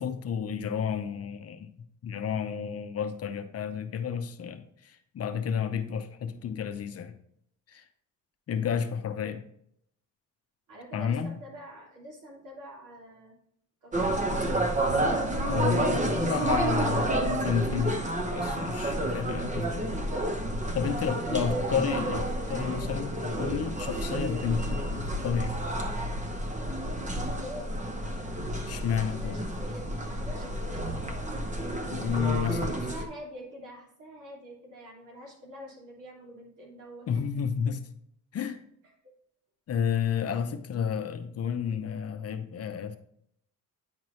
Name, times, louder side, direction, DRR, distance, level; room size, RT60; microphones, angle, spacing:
voice 1, 0.0-1.7 2.0-7.1 7.7-7.8 8.5-9.4 10.9-11.4 15.4-18.0 18.3-19.9 20.7-25.6 28.7-29.4 31.9-32.8 37.1-37.8 38.3-38.6 39.7-43.0, left 7 dB, 50° left, 8 dB, 0.7 m, -31 dB
voice 2, 10.7-13.4 13.8-14.9 20.9-21.7 27.3-27.8 29.0-31.0 32.7-37.4 39.0-39.1, equal, 70° right, -3 dB, 2.9 m, -46 dB
sound 1, 13.9-33.0, right 1 dB, 20° right, 0.8 m, -30 dB
9.4 x 4.5 x 3.1 m, 0.70 s
cardioid pair, 110°, 32 cm